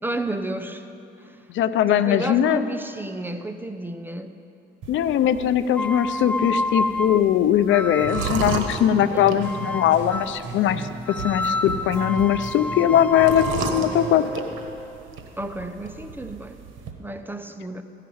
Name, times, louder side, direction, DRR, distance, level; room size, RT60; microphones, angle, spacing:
voice 1, 0.0-0.8 1.2-1.4 1.9-4.3 9.1-9.4 15.4-16.6 17.0-17.8, right 1 dB, 10° right, 7 dB, 0.7 m, -31 dB
voice 2, 1.5-2.6 4.9-10.9 11.2-14.2, left 10 dB, 75° left, 12 dB, 0.5 m, -20 dB
sound 1, 4.8-16.9, right 5 dB, 80° right, 1.2 m, -35 dB
sound 2, 5.7-8.6 9.4-10.5 11.1-15.0, left 2 dB, 10° left, 0.4 m, -30 dB
sound 3, 8.0-10.9 11.2-14.4, right 4 dB, 60° right, 2.1 m, -36 dB
15.0 x 5.8 x 8.6 m, 2.6 s
cardioid pair, 90°, 20 cm